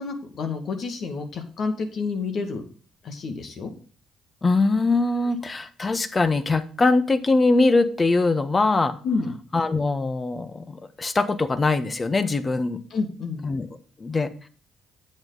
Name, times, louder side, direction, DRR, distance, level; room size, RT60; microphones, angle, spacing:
voice 1, 0.0-2.6 3.0-3.7 9.0-9.3 12.9-13.4, left 4 dB, 60° left, 6 dB, 2.2 m, -29 dB
voice 2, 4.4-9.0 9.5-12.8 13.4-13.7 14.0-14.3, left 3 dB, 30° left, 11 dB, 1.3 m, -22 dB
8.7 x 7.8 x 4.0 m, 0.41 s
hypercardioid pair, 50°, 0 cm